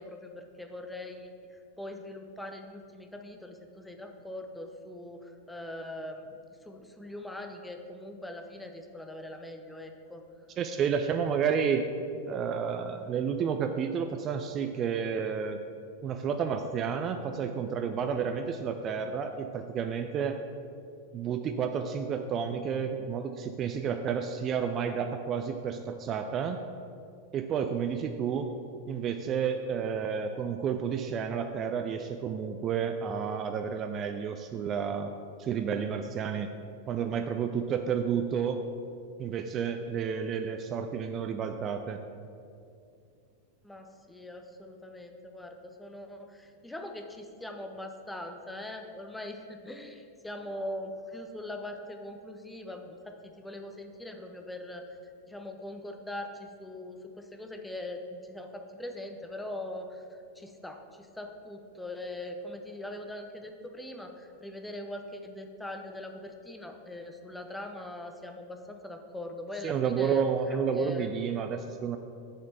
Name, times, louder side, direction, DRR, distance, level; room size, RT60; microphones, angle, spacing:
voice 1, 0.0-6.3 6.6-10.2 43.6-70.2 70.5-71.1, left 1 dB, 5° left, 4 dB, 0.7 m, -42 dB
voice 2, 10.6-11.9 12.3-15.6 16.0-20.4 21.1-26.6 27.3-28.5 28.9-35.1 35.4-36.5 36.9-38.6 39.2-42.0 69.6-72.0, right 7 dB, 30° right, 7 dB, 0.4 m, -31 dB
7.5 x 4.3 x 6.8 m, 2.4 s
figure-of-eight pair, 90°, 0 cm